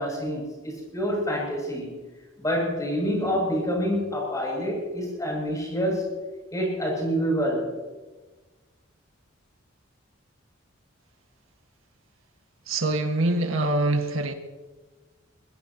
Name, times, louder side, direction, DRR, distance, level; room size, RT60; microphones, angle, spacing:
voice 1, 0.0-2.0 2.4-6.1 6.5-7.8, equal, 15° left, -1 dB, 7.6 m, -27 dB
voice 2, 12.7-14.3, right 2 dB, 85° right, 5 dB, 1.8 m, -24 dB
22.0 x 20.5 x 3.0 m, 1.2 s
head